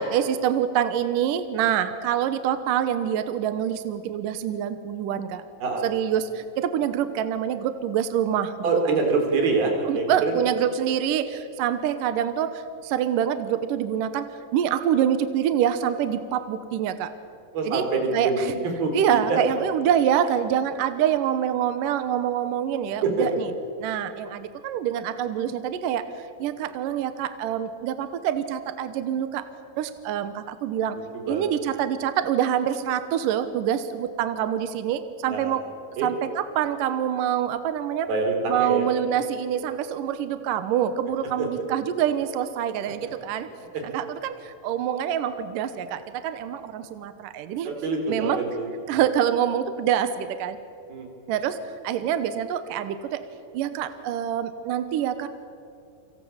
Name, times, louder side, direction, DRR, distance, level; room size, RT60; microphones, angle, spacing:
voice 1, 0.0-5.4 5.8-8.5 8.8-9.0 9.9-17.1 17.6-17.9 18.1-18.5 18.9-23.5 23.8-26.1 26.4-29.4 29.8-31.0 31.3-35.6 36.0-38.1 38.5-43.5 43.8-47.7 48.1-48.4 48.9-50.6 51.3-53.2 53.5-55.3, right 9 dB, 70° right, 11 dB, 2.5 m, -26 dB
voice 2, 8.6-10.3 17.5-18.4 18.8-19.2 23.0-23.3 30.9-31.5 35.3-35.6 36.0-36.1 38.1-38.9 41.4-41.6 43.0-43.1 43.7-43.8 47.6-48.7 50.9-51.1, right 4 dB, 90° right, 2 dB, 5.9 m, -25 dB
29.5 x 25.5 x 7.2 m, 2.6 s
omnidirectional pair, 4.2 m